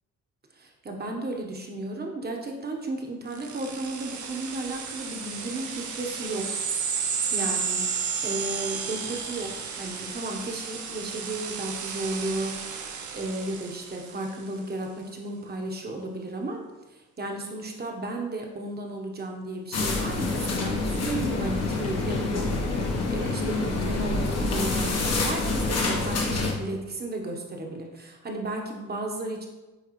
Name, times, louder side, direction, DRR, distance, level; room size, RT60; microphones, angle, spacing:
voice 1, 0.6-6.5 7.3-7.8 8.2-12.8 13.1-16.6 16.9-29.5, right 2 dB, 30° right, 1 dB, 1.1 m, -34 dB
sound 1, 3.3-14.4, right 6 dB, 70° right, 0.9 m, -33 dB
sound 2, 19.7-26.5, left 3 dB, 55° left, 1.3 m, -27 dB
9.2 x 3.3 x 3.1 m, 1.1 s
cardioid pair, 90°, 30 cm